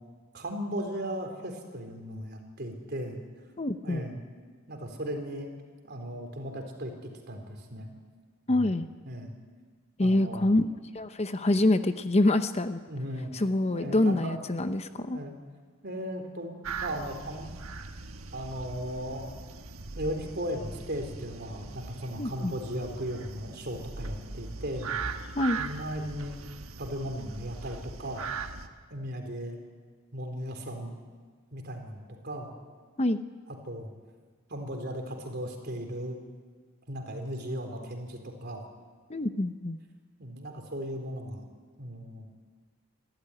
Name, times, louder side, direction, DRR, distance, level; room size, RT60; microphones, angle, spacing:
voice 1, 0.3-3.2 3.8-4.2 4.7-5.5 5.8-7.9 8.5-8.7 9.0-9.4 10.0-10.6 12.9-13.3 13.7-14.4 14.9-15.3 15.8-17.6 18.3-19.4 20.0-25.0 25.6-26.3 26.8-28.2 28.9-29.6 30.1-30.9 31.5-32.6 33.5-33.9 34.5-36.2 36.9-38.6 40.2-41.4 41.8-42.3, equal, 50° right, 4 dB, 3.9 m, -37 dB
voice 2, 3.6-4.0 8.5-8.9 10.0-10.7 10.9-12.8 13.3-15.2 22.2-22.5 25.4-25.6 33.0-33.2 39.1-39.8, left 1 dB, 30° left, 10 dB, 0.7 m, -26 dB
sound 1, 16.6-28.7, right 4 dB, 85° right, 1.4 m, -40 dB
26.5 x 13.5 x 9.8 m, 1.5 s
head